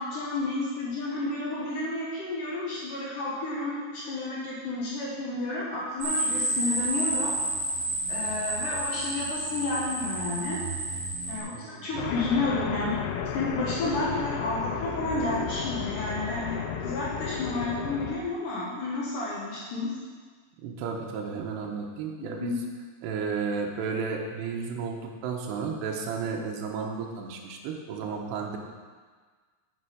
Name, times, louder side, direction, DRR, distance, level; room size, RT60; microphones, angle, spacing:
voice 1, 0.0-7.3 8.1-10.6 11.3-13.0 13.3-19.9 22.2-22.6, left 2 dB, 60° left, -6 dB, 2.4 m, -31 dB
sound 1, 6.0-11.4, right 1 dB, 60° right, 2.5 m, -30 dB
voice 2, 11.5-11.9 20.6-22.6 23.0-28.6, right 5 dB, 80° right, 0 dB, 3.0 m, -33 dB
sound 2, 12.0-18.2, left 7 dB, 85° left, 3.0 m, -33 dB
8.9 x 7.8 x 5.0 m, 1.5 s
omnidirectional pair, 5.2 m